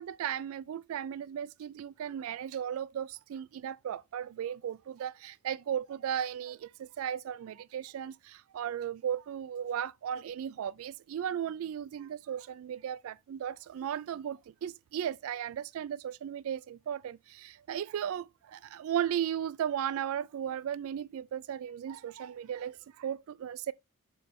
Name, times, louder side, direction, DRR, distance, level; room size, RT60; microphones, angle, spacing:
voice 1, 0.0-23.7, right 9 dB, 70° right, 0.3 m, -36 dB
6.9 x 3.2 x 5.2 m
head